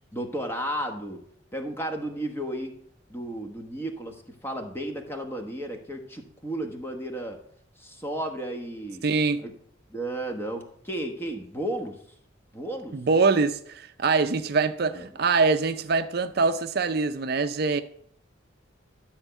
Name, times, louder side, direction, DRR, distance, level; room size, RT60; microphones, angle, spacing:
voice 1, 0.1-1.2 1.5-2.7 3.1-7.4 7.8-9.0 9.4-9.5 9.9-12.0 12.5-13.0 14.9-15.1, right 1 dB, 10° left, 1.2 m, -33 dB
voice 2, 9.0-9.4 12.9-17.8, right 4 dB, 50° right, 0.5 m, -24 dB
12.5 x 4.4 x 8.0 m
head